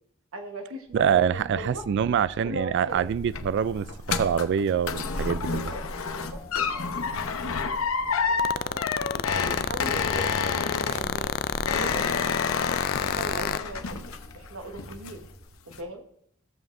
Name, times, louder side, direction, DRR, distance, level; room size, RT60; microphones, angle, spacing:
voice 1, 0.3-1.9 2.4-3.1 5.4-5.8 6.1-7.8 8.3-12.3 13.0-14.1 14.3-15.3 15.6-16.0, right 2 dB, 75° right, 4 dB, 1.2 m, -40 dB
sound 1, 0.9-15.5, equal, 30° left, 2.1 m, -44 dB
voice 2, 0.9-5.7, right 8 dB, 55° right, 17 dB, 0.3 m, -25 dB
sound 2, 2.9-14.5 14.8-15.3 15.7-15.8, left 5 dB, 70° left, 0.8 m, -30 dB
sound 3, 8.4-13.6, left 8 dB, 45° left, 0.3 m, -28 dB
16.0 x 7.3 x 2.6 m, 0.68 s
head